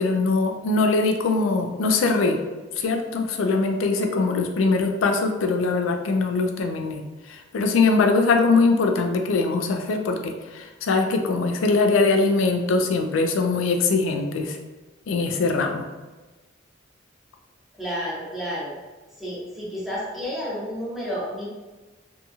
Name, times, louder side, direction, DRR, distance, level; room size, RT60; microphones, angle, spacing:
voice 1, 0.0-2.4 2.8-7.0 7.3-14.6 15.1-15.9, left 3 dB, 90° left, 4 dB, 0.4 m, -22 dB
voice 2, 17.8-18.7 19.2-21.5, equal, ahead, -7 dB, 0.7 m, -31 dB
2.7 x 2.7 x 2.3 m, 1.2 s
head